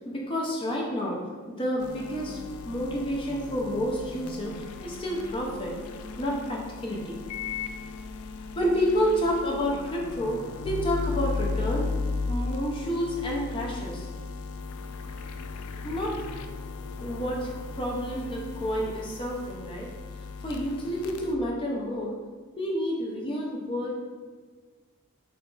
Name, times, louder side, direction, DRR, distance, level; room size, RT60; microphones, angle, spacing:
voice 1, 0.0-2.4 2.7-5.7 6.2-7.2 8.4-11.9 12.3-14.1 15.8-16.3 17.0-19.9 20.4-22.2 22.6-23.9, equal, 25° left, -2 dB, 0.5 m, -29 dB
sound 1, 1.8-21.3, left 4 dB, 85° left, 0.3 m, -36 dB
3.9 x 3.7 x 2.4 m, 1.5 s
head